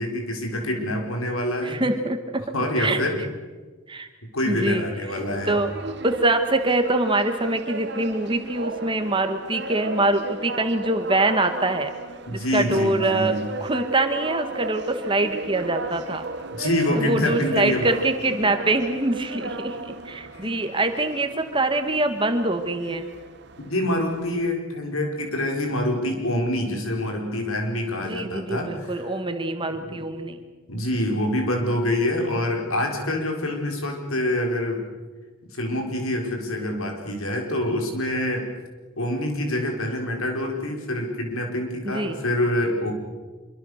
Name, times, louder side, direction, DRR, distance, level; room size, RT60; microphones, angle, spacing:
voice 1, 0.0-1.8 2.5-3.2 4.3-5.6 12.3-13.5 16.5-17.8 20.4-20.5 23.6-29.1 29.8-29.9 30.7-34.8 35.5-38.5 39.0-42.9, left 1 dB, 80° left, 2 dB, 5.1 m, -26 dB
voice 2, 1.6-2.4 2.7-3.1 3.9-4.1 4.5-4.9 5.4-11.9 12.3-16.2 16.9-23.1 28.0-30.4 41.8-42.2, right 2 dB, 25° right, 7 dB, 1.7 m, -24 dB
sound 1, 5.1-24.5, right 2 dB, 50° right, 1.4 m, -35 dB
26.0 x 24.0 x 6.6 m, 1.4 s
head